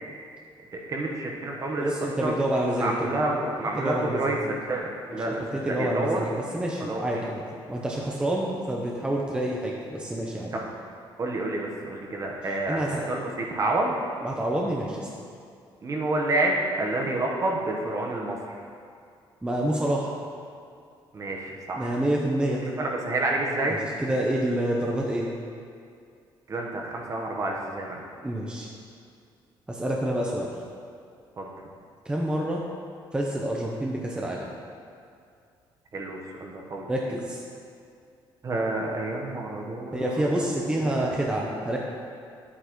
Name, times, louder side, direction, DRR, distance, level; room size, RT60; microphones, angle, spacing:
voice 1, 0.7-1.9 2.2-2.4 2.8-6.3 6.9-7.1 10.5-10.7 11.2-14.0 15.8-18.6 21.1-22.0 22.6-23.8 26.5-28.0 31.4-31.5 35.9-36.9 38.4-40.2 40.6-41.1 41.4-41.6, right 2 dB, 35° right, 0 dB, 1.2 m, -29 dB
voice 2, 1.8-3.2 3.8-4.4 5.2-5.3 5.5-7.4 7.7-10.5 12.7-13.1 14.2-15.1 19.4-20.1 21.8-22.7 23.6-25.3 28.2-28.7 29.7-30.5 32.0-32.6 33.1-34.5 36.9-37.4 39.9-41.8, right 1 dB, 10° right, -2 dB, 0.8 m, -28 dB
9.7 x 8.3 x 3.1 m, 2.4 s
cardioid pair, 130°, 9 cm